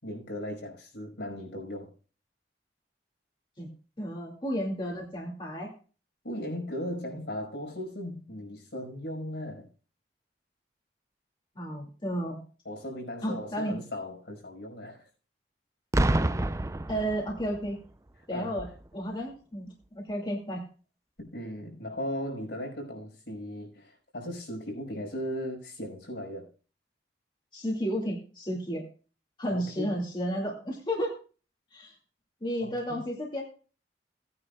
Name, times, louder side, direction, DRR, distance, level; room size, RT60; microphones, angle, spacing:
voice 1, 0.0-1.9 6.2-9.7 12.7-15.1 18.3-18.6 21.2-26.5 29.5-30.0 32.6-33.0, left 1 dB, 75° left, 5.3 m, -37 dB
voice 2, 4.0-5.7 11.6-12.4 13.2-13.7 16.9-17.8 18.3-18.7 18.9-20.6 27.5-28.8 29.4-31.1 31.7-31.9 32.4-33.4, equal, 25° left, 2.3 m, -32 dB
Boom, 15.9-17.7 18.6-18.8, right 1 dB, 15° right, 0.4 m, -27 dB
18.0 x 9.5 x 2.3 m
head